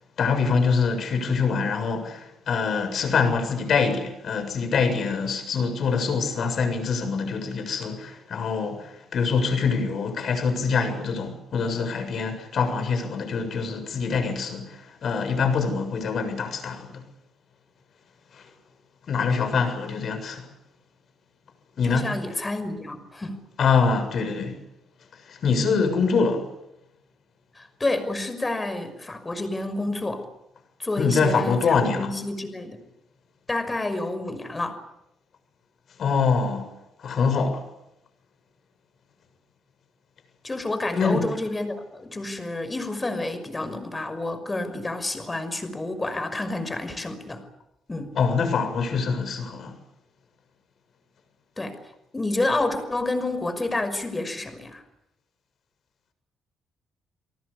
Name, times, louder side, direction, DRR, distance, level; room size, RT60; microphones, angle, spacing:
voice 1, 0.2-17.0 18.3-18.4 19.1-20.5 21.8-22.1 23.6-24.6 25.3-26.5 31.0-32.1 36.0-36.7 37.0-37.6 40.9-41.3 48.2-49.7, left 5 dB, 60° left, 7.2 m, -24 dB
voice 2, 21.8-23.4 27.6-30.2 30.8-32.8 33.5-34.8 40.4-47.4 47.9-48.1 51.6-51.8 52.1-54.8, left 2 dB, 20° left, 5.8 m, -29 dB
29.5 x 19.0 x 8.7 m
cardioid pair, 90°, 0 cm